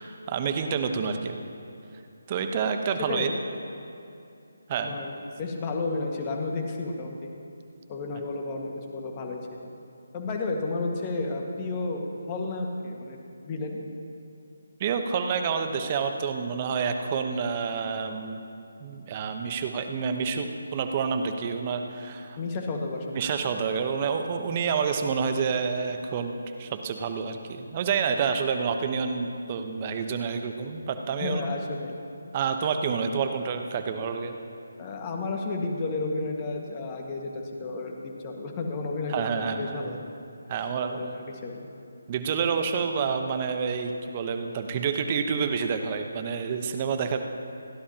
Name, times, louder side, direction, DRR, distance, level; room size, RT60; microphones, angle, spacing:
voice 1, 0.0-1.3 2.3-3.3 4.7-4.9 14.8-18.4 18.8-22.4 23.1-31.4 32.3-34.3 39.1-39.8 40.5-41.0 42.1-47.2, right 6 dB, 30° right, 6 dB, 1.0 m, -28 dB
voice 2, 3.0-3.3 4.8-7.3 7.9-9.6 10.1-13.2 13.4-13.8 22.4-23.3 31.2-32.0 34.8-39.2 39.5-40.0 40.5-40.6 40.9-41.7, left 3 dB, 25° left, 1 dB, 1.7 m, -32 dB
29.0 x 11.0 x 2.9 m, 2.7 s
figure-of-eight pair, 155°, 0 cm